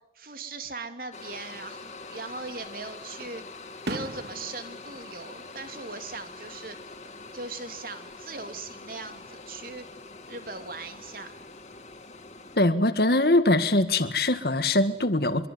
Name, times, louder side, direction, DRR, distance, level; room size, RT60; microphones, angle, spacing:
voice 1, 0.1-3.4 3.9-6.8 7.3-9.9 10.3-11.3, right 3 dB, 55° right, 8 dB, 2.9 m, -39 dB
sound 1, 1.1-12.6, left 3 dB, 40° left, 2.8 m, -44 dB
Fireworks, 2.0-2.7 3.2-6.3 6.6-7.2 8.7-9.6, right 1 dB, 70° right, 2.8 m, -41 dB
voice 2, 12.6-15.5, left 2 dB, 60° left, 11 dB, 1.8 m, -22 dB
25.5 x 23.5 x 9.7 m, 0.87 s
head